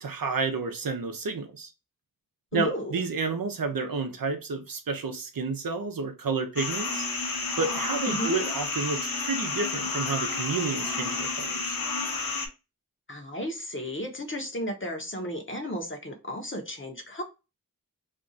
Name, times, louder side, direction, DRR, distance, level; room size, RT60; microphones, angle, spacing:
voice 1, 0.0-1.7 2.5-7.1 7.6-11.8, right 4 dB, 75° right, 0.6 m, -30 dB
voice 2, 2.5-2.9 8.1-8.4 13.1-17.2, equal, 35° left, 0.7 m, -33 dB
sound 1, 6.6-12.5, left 3 dB, 80° left, 0.8 m, -31 dB
2.5 x 2.3 x 3.8 m
wide cardioid pair, 70°, 34 cm